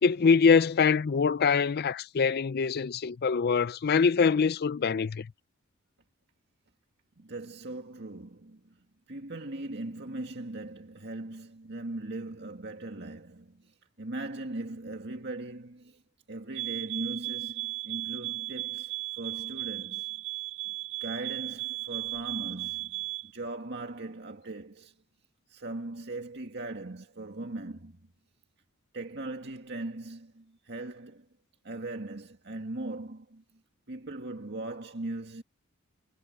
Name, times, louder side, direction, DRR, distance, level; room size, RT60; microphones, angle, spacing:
voice 1, 0.0-5.3, left 5 dB, 45° left, 0.4 m, -24 dB
voice 2, 7.2-16.0 16.3-20.1 20.7-20.8 21.0-24.9 25.5-28.1 28.9-31.3 31.6-33.4 33.9-35.4, right 2 dB, 50° right, 2.0 m, -39 dB
sound 1, 16.5-23.3, right 17 dB, 85° right, 1.6 m, -36 dB
head